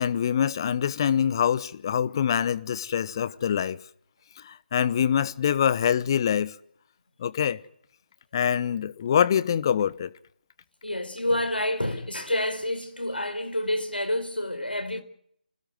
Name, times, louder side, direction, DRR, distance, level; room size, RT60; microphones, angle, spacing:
voice 1, 0.0-3.8 4.4-6.6 7.2-7.6 8.3-10.1, left 8 dB, 25° left, 0.9 m, -25 dB
voice 2, 10.8-15.0, left 1 dB, 80° left, 4.5 m, -28 dB
26.0 x 18.5 x 9.3 m
figure-of-eight pair, 150°, 5 cm